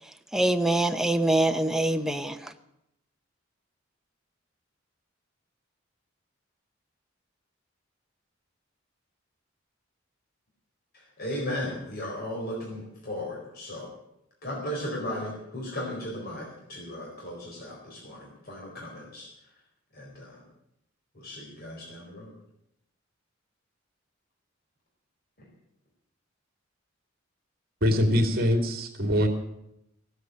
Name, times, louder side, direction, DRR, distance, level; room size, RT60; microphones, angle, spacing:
voice 1, 0.3-2.5, right 1 dB, ahead, 7 dB, 0.8 m, -24 dB
voice 2, 10.9-13.9 14.4-19.3 19.9-20.4 21.1-22.3, left 1 dB, 50° left, -2 dB, 4.3 m, -36 dB
voice 3, 27.8-29.3, equal, 50° right, 5 dB, 2.5 m, -23 dB
16.0 x 8.1 x 9.1 m, 0.81 s
head